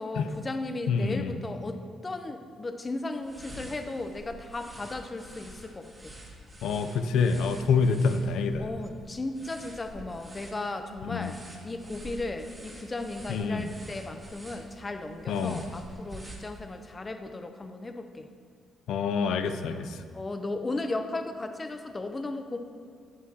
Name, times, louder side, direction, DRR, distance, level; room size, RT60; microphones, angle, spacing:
voice 1, 0.0-6.1 8.6-18.3 20.1-22.6, left 2 dB, 25° left, 7 dB, 0.6 m, -36 dB
voice 2, 0.9-1.3 6.6-8.7 11.1-11.3 13.3-13.7 15.3-15.6 18.9-20.0, left 5 dB, 80° left, 9 dB, 0.5 m, -27 dB
sound 1, 3.2-16.9, right 1 dB, 20° right, 2.0 m, -48 dB
9.5 x 8.2 x 2.9 m, 2.1 s
cardioid pair, 90°, 0 cm